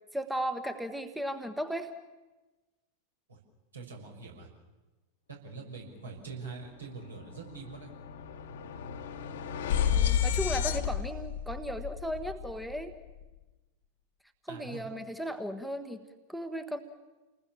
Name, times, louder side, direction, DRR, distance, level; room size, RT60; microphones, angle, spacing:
voice 1, 0.1-1.9 9.9-12.9 14.5-16.8, equal, ahead, 8 dB, 1.3 m, -36 dB
voice 2, 3.7-4.5 5.3-7.9 14.5-14.8, right 4 dB, 70° right, 0 dB, 6.4 m, -44 dB
sound 1, 6.5-6.7 7.0-13.2, left 9 dB, 55° left, 1.4 m, -32 dB
29.5 x 20.0 x 7.3 m, 1.2 s
figure-of-eight pair, 90°, 0 cm